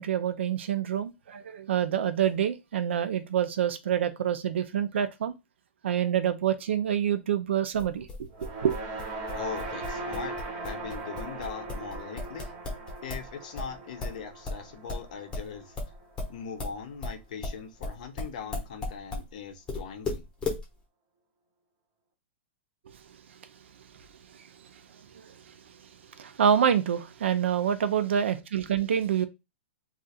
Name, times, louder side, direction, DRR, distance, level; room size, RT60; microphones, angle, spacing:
voice 1, 0.0-5.3 5.8-8.1 8.6-8.8 26.2-29.3, right 9 dB, 70° right, 0.5 m, -26 dB
sound 1, 7.7-13.3 13.6-19.3 19.7-20.6, left 3 dB, 10° left, 0.8 m, -35 dB
sound 2, 8.3-16.7, right 3 dB, 25° right, 0.6 m, -40 dB
voice 2, 9.3-10.4 10.6-12.5 13.0-15.8 16.3-20.3, left 6 dB, 40° left, 0.6 m, -40 dB
2.4 x 2.4 x 4.1 m
hypercardioid pair, 175°, 7 cm